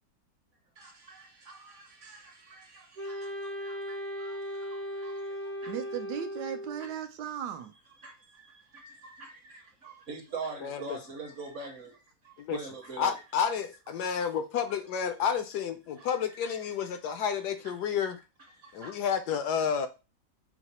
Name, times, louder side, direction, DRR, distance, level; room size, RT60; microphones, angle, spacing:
voice 1, 0.8-5.7 6.4-6.9 8.0-11.9 12.2-13.2 14.0-14.1 16.0-16.5 17.0-17.1 17.6-17.7 18.6-19.0, right 4 dB, 50° right, 1.1 m, -45 dB
Wind instrument woodwind instrument, 3.0-6.9, equal, 35° right, 0.7 m, -37 dB
voice 2, 5.7-7.7, right 9 dB, 75° right, 1.1 m, -36 dB
voice 3, 10.6-11.0 12.4-12.6 13.0-18.2 18.7-19.9, left 7 dB, 75° left, 1.1 m, -30 dB
5.8 x 2.1 x 4.1 m
omnidirectional pair, 1.9 m